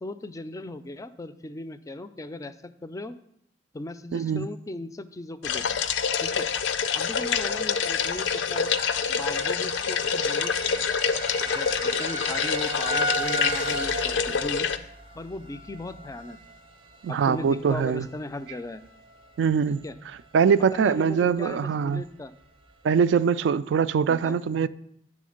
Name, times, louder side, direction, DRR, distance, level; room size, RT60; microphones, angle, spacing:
voice 1, 0.0-3.2 3.7-5.6 6.2-6.5 6.9-8.7 9.1-10.5 11.5-14.7 15.1-16.4 17.1-18.8 19.8-19.9 20.7-22.3 24.1-24.4, left 2 dB, 20° left, 0.3 m, -37 dB
voice 2, 4.1-4.5 17.0-18.0 19.4-19.8 20.3-22.0 22.8-24.7, right 6 dB, 70° right, 0.3 m, -23 dB
agua grifo, 5.4-14.8, left 6 dB, 85° left, 0.5 m, -26 dB
sound 1, 8.0-18.7 18.9-19.4 19.9-20.0 20.4-20.5, right 1 dB, 30° right, 0.5 m, -36 dB
9.4 x 3.6 x 6.4 m
head